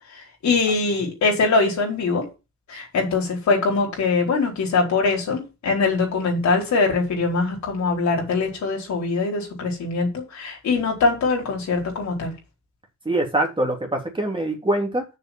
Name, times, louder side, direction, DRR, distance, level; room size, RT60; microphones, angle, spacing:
voice 1, 0.1-2.3 2.7-12.3, left 4 dB, 65° left, 4.6 m, -22 dB
voice 2, 13.0-15.0, right 1 dB, 15° right, 2.9 m, -24 dB
6.9 x 6.0 x 7.4 m
cardioid pair, 90°, 30 cm